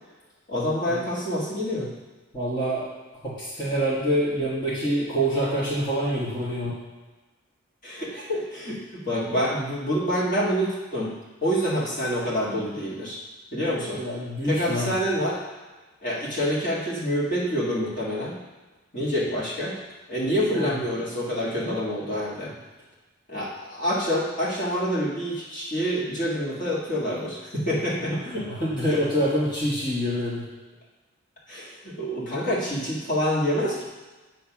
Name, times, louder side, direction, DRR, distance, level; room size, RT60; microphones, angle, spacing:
voice 1, 0.5-1.9 7.8-11.1 11.4-13.2 13.5-14.0 14.4-15.4 16.0-18.4 18.9-19.8 20.1-22.5 23.3-28.2 28.9-29.0 31.5-33.9, equal, 40° left, -7 dB, 1.9 m, -27 dB
voice 2, 2.3-2.8 3.2-6.7 13.9-14.9 20.5-20.8 28.2-30.4, equal, 20° left, -10 dB, 1.5 m, -26 dB
8.8 x 3.2 x 6.0 m, 1.2 s
head